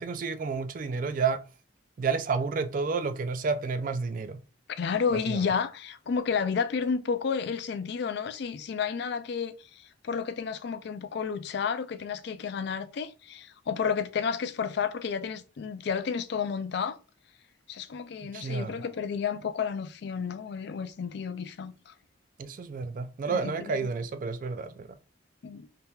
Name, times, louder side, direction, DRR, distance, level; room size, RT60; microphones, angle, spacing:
voice 1, 0.0-1.4 2.0-4.4 5.1-5.5 18.2-18.8 22.4-25.0, right 4 dB, 45° right, 0.3 m, -30 dB
voice 2, 4.8-17.0 17.7-21.9 23.3-23.9 25.4-25.7, left 6 dB, 55° left, 0.3 m, -31 dB
3.5 x 2.7 x 2.3 m
head